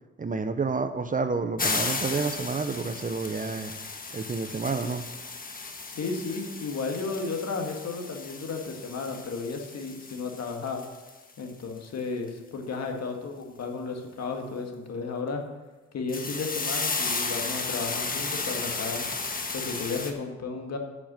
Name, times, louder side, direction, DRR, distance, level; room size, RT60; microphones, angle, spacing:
voice 1, 0.2-3.7 4.1-5.0, right 4 dB, 25° right, 9 dB, 0.8 m, -29 dB
sound 1, 1.6-11.1 11.5-11.6 16.1-20.1, left 4 dB, 30° left, 1.5 m, -34 dB
voice 2, 5.9-10.8 11.4-15.4 15.9-19.0 19.5-20.8, left 4 dB, 60° left, 3 dB, 2.0 m, -33 dB
8.4 x 7.5 x 7.5 m, 1.2 s
cardioid pair, 90°, 30 cm